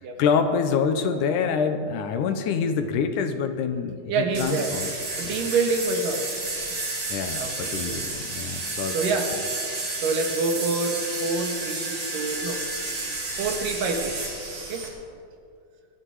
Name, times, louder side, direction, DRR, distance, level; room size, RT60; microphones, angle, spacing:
voice 1, 0.2-4.9 5.2-5.3 7.1-9.0, left 6 dB, 75° left, 8 dB, 2.4 m, -26 dB
voice 2, 4.1-4.8 5.2-6.3 7.4-8.0 8.9-9.3 10.0-12.6 13.4-14.2 14.7-14.9, right 4 dB, 85° right, 3 dB, 3.3 m, -27 dB
sound 1, 4.3-14.9, right 2 dB, 40° right, 3.2 m, -31 dB
23.0 x 12.5 x 4.9 m, 2.3 s
omnidirectional pair, 3.8 m